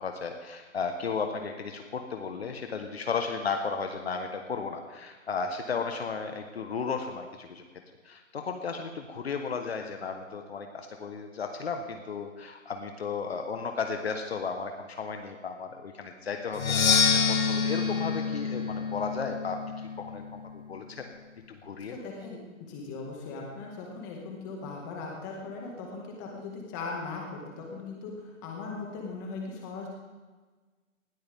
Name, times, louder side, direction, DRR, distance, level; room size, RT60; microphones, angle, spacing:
voice 1, 0.0-7.6 8.0-16.8 17.1-19.6 20.0-21.0 21.5-22.0, left 5 dB, 50° left, 5 dB, 1.4 m, -34 dB
Percussion, 16.5-20.3, left 6 dB, 90° left, 1.9 m, -27 dB
voice 2, 21.8-29.9, left 4 dB, 15° left, -1 dB, 1.9 m, -39 dB
19.5 x 13.5 x 3.6 m, 1.3 s
hypercardioid pair, 170°, 40 cm